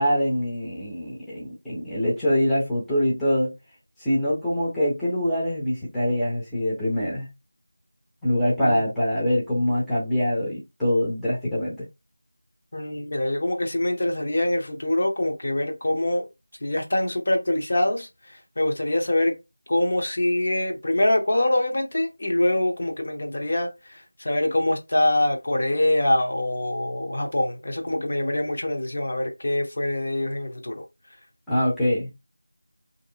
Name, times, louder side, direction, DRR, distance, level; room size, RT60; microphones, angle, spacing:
voice 1, 0.0-3.5 4.0-7.3 8.2-11.8 31.5-32.1, equal, ahead, 0.6 m, -24 dB
voice 2, 12.7-16.3 16.6-18.1 18.6-19.4 19.7-23.7 24.2-30.8, left 1 dB, 45° left, 0.6 m, -24 dB
3.1 x 2.6 x 2.7 m
figure-of-eight pair, 175°, 0 cm